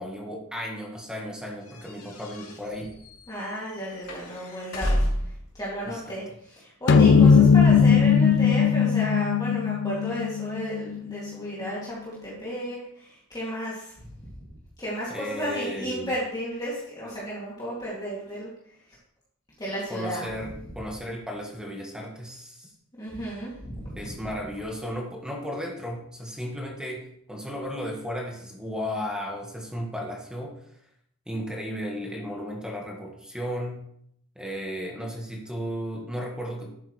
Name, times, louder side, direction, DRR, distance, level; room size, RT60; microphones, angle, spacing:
voice 1, 0.0-2.9 5.8-6.1 15.1-16.1 19.9-22.7 24.0-30.5 31.3-33.8 34.3-36.7, equal, 5° right, -1 dB, 1.6 m, -34 dB
sound 1, 1.7-5.4, equal, 80° left, 3.2 m, -31 dB
voice 2, 3.3-4.9 5.5-13.9 14.8-18.5 19.6-20.3 23.0-24.1, equal, 20° left, -7 dB, 2.6 m, -33 dB
sound 2, 6.9-11.5, left 6 dB, 55° left, 0.4 m, -18 dB
11.5 x 8.9 x 3.2 m, 0.71 s
head